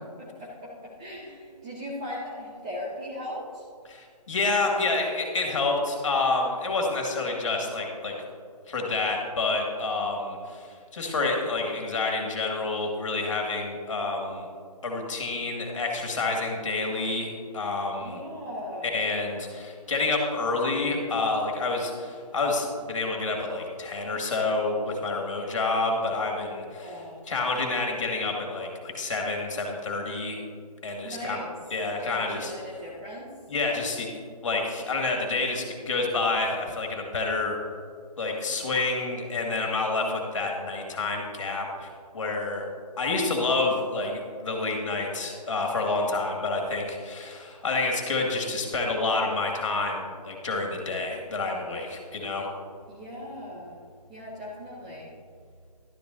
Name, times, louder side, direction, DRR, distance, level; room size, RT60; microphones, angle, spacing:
voice 1, 0.2-3.7 18.0-18.9 26.6-27.2 31.0-31.6 32.0-33.3 52.9-53.8 54.1-55.2, left 1 dB, 10° right, -5 dB, 0.5 m, -38 dB
voice 2, 3.9-8.1 8.7-14.5 14.8-18.2 18.8-26.9 27.3-30.4 30.8-31.4 31.7-32.5 33.5-34.1 34.4-37.6 38.2-42.7 43.0-52.5, left 3 dB, 50° left, 1 dB, 2.1 m, -28 dB
12.0 x 11.0 x 2.7 m, 2.1 s
figure-of-eight pair, 155°, 21 cm